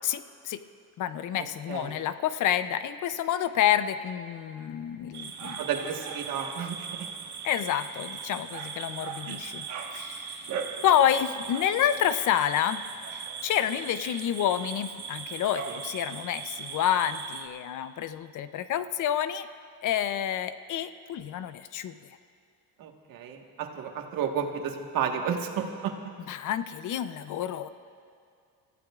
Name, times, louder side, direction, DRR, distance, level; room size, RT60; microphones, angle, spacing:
voice 1, 0.0-0.6 1.0-5.6 7.4-9.7 9.9-10.5 10.8-12.8 13.1-19.5 19.8-22.0 26.3-27.7, left 10 dB, 60° left, 12 dB, 0.7 m, -28 dB
voice 2, 1.4-2.0 5.6-7.1 9.3-9.4 15.7-15.8 22.8-25.9, right 7 dB, 75° right, 2 dB, 1.6 m, -32 dB
sound 1, 5.1-17.5, right 6 dB, 55° right, 1.5 m, -38 dB
30.0 x 14.5 x 2.4 m, 2.4 s
cardioid pair, 120°, 34 cm